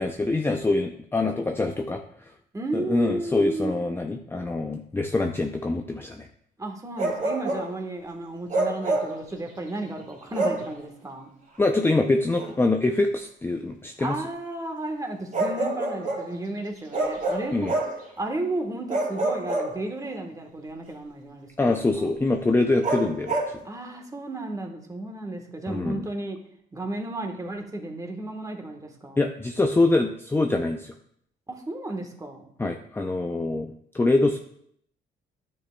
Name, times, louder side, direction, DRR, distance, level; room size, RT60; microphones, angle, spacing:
voice 1, 0.0-2.0 2.7-6.3 11.6-14.1 17.5-17.7 21.6-23.5 25.7-26.1 29.2-30.9 32.6-34.4, left 2 dB, 10° left, 3 dB, 0.5 m, -24 dB
voice 2, 2.5-3.8 6.6-11.3 14.0-17.7 18.2-22.1 23.6-26.4 26.7-29.2 31.5-32.5, right 2 dB, 15° right, 3 dB, 1.3 m, -33 dB
Bark, 7.0-7.7 8.5-9.2 10.3-10.7 12.4-12.5 15.3-16.3 16.9-18.0 18.9-20.2 22.8-23.6, right 2 dB, 40° right, 2.3 m, -27 dB
9.8 x 6.2 x 2.2 m, 0.67 s
cardioid pair, 90°, 20 cm